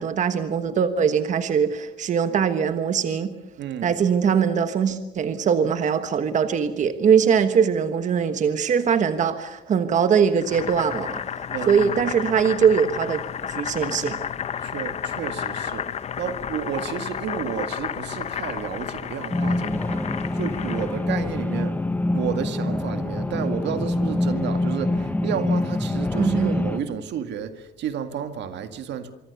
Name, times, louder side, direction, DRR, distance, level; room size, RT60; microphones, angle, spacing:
voice 1, 0.0-3.3 3.8-11.2 11.7-13.2 13.5-14.2 26.2-26.5, right 7 dB, 45° right, 9 dB, 1.3 m, -21 dB
voice 2, 3.6-4.0 11.5-12.2 14.6-21.8 22.1-29.1, right 8 dB, 80° right, 9 dB, 2.0 m, -32 dB
Boiling, 10.4-21.1, left 8 dB, 40° left, 0.9 m, -32 dB
sound 1, 19.3-26.8, left 2 dB, 10° left, 1.1 m, -25 dB
25.5 x 24.5 x 7.0 m, 0.90 s
cardioid pair, 175°, 18 cm